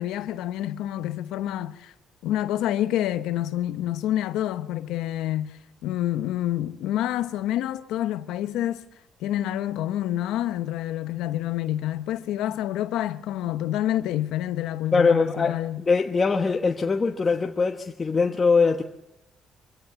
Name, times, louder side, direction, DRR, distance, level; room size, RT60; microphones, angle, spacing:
voice 1, 0.0-1.9 2.2-8.8 9.2-15.8, left 12 dB, 90° left, 0.9 m, -28 dB
voice 2, 14.9-18.8, left 4 dB, 35° left, 1.2 m, -22 dB
24.0 x 16.0 x 7.0 m
cardioid pair, 85°, 0 cm